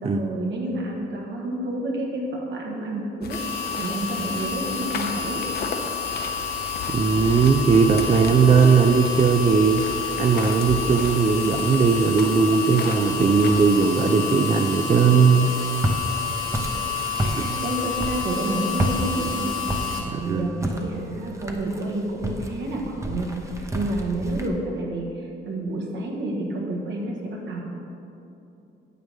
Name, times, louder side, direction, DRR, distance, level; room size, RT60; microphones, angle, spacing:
voice 1, 0.0-2.2 2.5-3.4 3.7-5.4 16.5-16.6 17.1-19.7 20.0-23.3 23.7-25.0 25.4-27.6, right 1 dB, 70° right, -1 dB, 1.7 m, -29 dB
sound 1, 3.2-13.6, left 4 dB, 55° left, 0.8 m, -35 dB
sound 2, 3.3-20.0, left 6 dB, 85° left, 1.4 m, -29 dB
voice 2, 6.9-15.5 17.2-17.6 20.1-20.6, right 5 dB, 30° right, 6 dB, 0.4 m, -19 dB
Walk footsteps, 15.3-24.5, right 1 dB, 15° right, 0.8 m, -31 dB
9.4 x 7.4 x 3.7 m, 2.8 s
cardioid pair, 90°, 20 cm